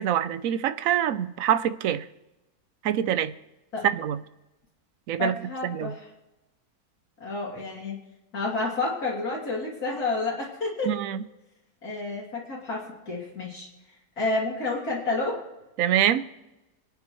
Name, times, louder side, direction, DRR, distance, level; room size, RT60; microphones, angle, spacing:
voice 1, 0.0-2.0 2.8-3.3 3.8-4.2 5.1-5.4 5.6-5.9 10.9-11.2 15.8-16.2, right 10 dB, 70° right, 13 dB, 1.0 m, -25 dB
voice 2, 5.2-6.1 7.2-8.0 8.3-10.9 11.8-13.7 14.2-15.4, left 3 dB, 85° left, -4 dB, 3.4 m, -30 dB
26.5 x 9.2 x 3.1 m, 1.0 s
omnidirectional pair, 1.6 m